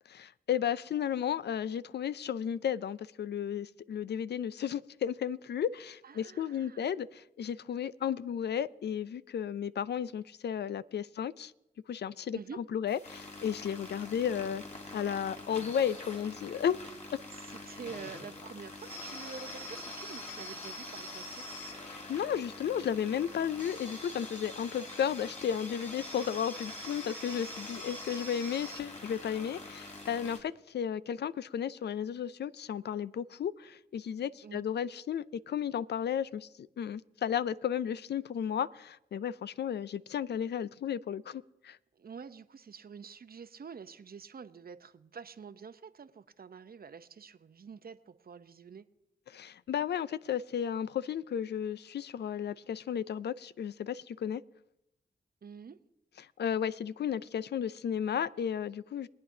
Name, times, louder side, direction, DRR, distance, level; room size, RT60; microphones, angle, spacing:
voice 1, 0.1-11.5 11.9-12.4 12.7-14.6 14.9-16.8 21.9-41.8 49.3-54.4 56.2-59.1, left 8 dB, 70° left, 17 dB, 0.4 m, -34 dB
voice 2, 6.0-6.9 12.3-12.6 17.3-21.5 34.4-34.6 42.0-48.8 55.4-55.8, right 6 dB, 55° right, 12 dB, 0.7 m, -47 dB
sound 1, 12.9-30.4, left 1 dB, 40° left, 3.4 m, -44 dB
23.0 x 8.8 x 2.7 m, 0.88 s
supercardioid pair, 40°, 18 cm